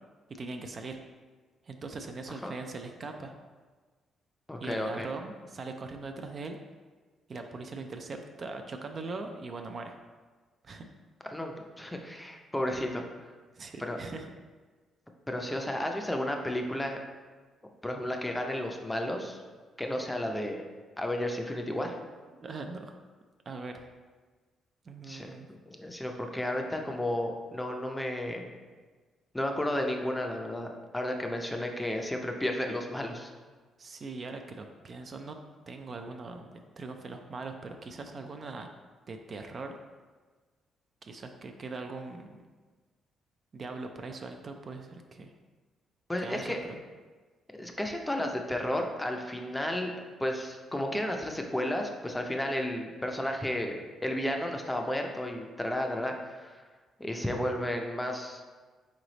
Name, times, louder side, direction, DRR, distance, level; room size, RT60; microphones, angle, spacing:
voice 1, 0.3-1.0 1.6-3.3 4.6-6.6 7.3-10.0 10.6-10.9 13.5-14.3 22.3-23.0 23.5-23.9 24.8-25.5 33.8-35.4 35.7-38.7 39.1-39.8 41.0-42.4 43.5-45.3 46.2-46.8, right 3 dB, 45° right, 5 dB, 0.4 m, -41 dB
voice 2, 4.5-5.1 11.3-13.0 13.8-14.0 15.3-17.0 17.8-19.4 19.8-20.6 21.0-22.0 25.1-28.5 29.3-33.3 46.1-46.6 47.5-49.9 50.2-56.6 57.0-58.4, left 1 dB, 10° left, 3 dB, 0.5 m, -32 dB
3.9 x 3.2 x 3.9 m, 1.4 s
cardioid pair, 90°, 0 cm